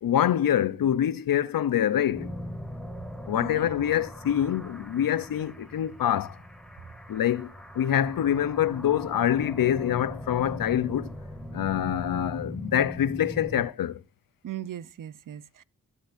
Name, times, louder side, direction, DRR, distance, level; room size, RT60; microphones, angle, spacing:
voice 1, 0.0-2.3 3.3-6.4 7.1-11.1 11.5-14.0, left 10 dB, 85° left, 0.7 m, -25 dB
sound 1, 2.1-13.6, equal, ahead, 2.6 m, -40 dB
voice 2, 3.4-4.0 14.4-15.6, right 11 dB, 70° right, 0.7 m, -39 dB
12.0 x 11.5 x 2.6 m
wide cardioid pair, 120°, 33 cm